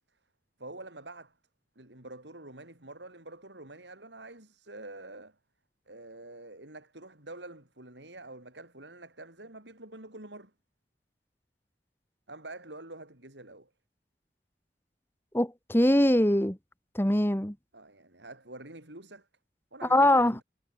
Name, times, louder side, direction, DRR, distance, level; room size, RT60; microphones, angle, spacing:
voice 1, 0.6-1.3 1.8-5.4 5.9-10.5 12.3-13.7 17.7-19.3 19.7-20.4, right 2 dB, 90° right, 7.5 m, -46 dB
voice 2, 15.3-16.6 16.9-17.6 19.9-20.4, left 1 dB, 15° left, 2.1 m, -23 dB
head